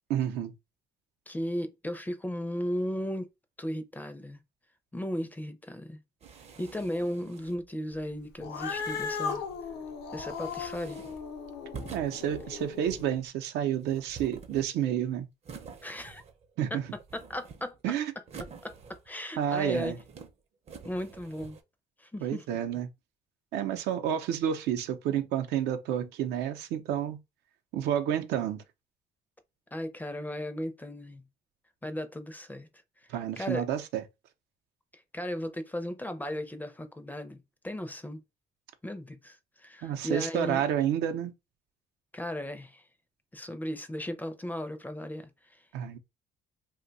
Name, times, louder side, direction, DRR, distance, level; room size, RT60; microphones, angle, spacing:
voice 1, 0.1-0.5 11.9-15.3 16.6-16.8 17.8-18.1 19.4-20.0 22.2-22.9 23.5-27.2 27.7-28.6 33.1-34.0 39.8-41.3 45.7-46.0, right 10 dB, 80° right, 0.6 m, -30 dB
voice 2, 1.3-3.3 3.6-4.4 4.9-6.0 6.6-9.4 10.1-11.1 15.8-16.2 17.1-17.8 18.6-20.0 20.8-21.6 22.0-22.4 29.7-31.2 31.8-32.7 33.4-33.6 34.9-37.4 37.6-38.2 38.8-40.6 42.1-42.8 43.3-45.6, equal, 10° left, 0.4 m, -36 dB
sound 1, 6.2-7.7 8.5-9.6 10.1-11.3 11.7-13.2 13.8-15.0 15.4-16.5 16.8-17.8 18.3-19.2 19.6-20.3 20.7-21.6, right 5 dB, 40° right, 0.6 m, -48 dB
Cat, 8.4-13.0, left 6 dB, 75° left, 0.7 m, -37 dB
2.6 x 2.2 x 3.9 m
cardioid pair, 110°, 17 cm